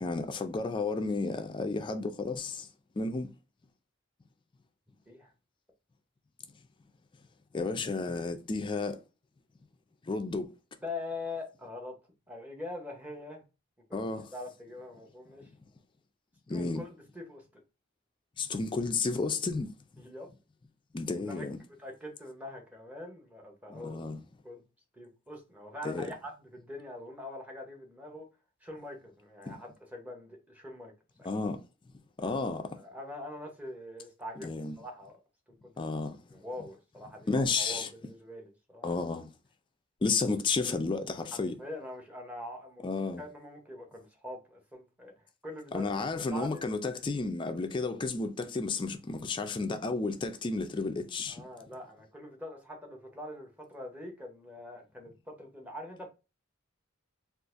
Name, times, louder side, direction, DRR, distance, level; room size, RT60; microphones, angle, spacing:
voice 1, 0.0-2.7 3.0-3.3 7.5-9.0 10.0-10.5 13.9-14.3 16.5-16.8 18.4-19.7 20.9-21.6 23.7-24.2 25.8-26.1 29.5-29.6 31.2-31.6 32.2-32.8 34.4-34.8 35.8-36.2 37.3-37.9 38.8-39.3 40.0-41.5 42.8-43.2 45.7-51.4, left 3 dB, 25° left, 0.3 m, -32 dB
voice 2, 10.8-12.0 12.3-13.4 13.9-14.0 14.3-15.5 16.5-17.4 20.0-20.3 21.1-21.5 21.8-24.0 24.4-24.6 24.9-28.3 28.6-30.9 31.2-31.3 32.2-32.3 32.7-34.5 34.8-35.2 35.6-35.8 36.3-38.9 41.3-42.8 43.2-46.6 51.3-56.1, left 1 dB, 10° right, 0.8 m, -43 dB
3.9 x 2.4 x 2.5 m
head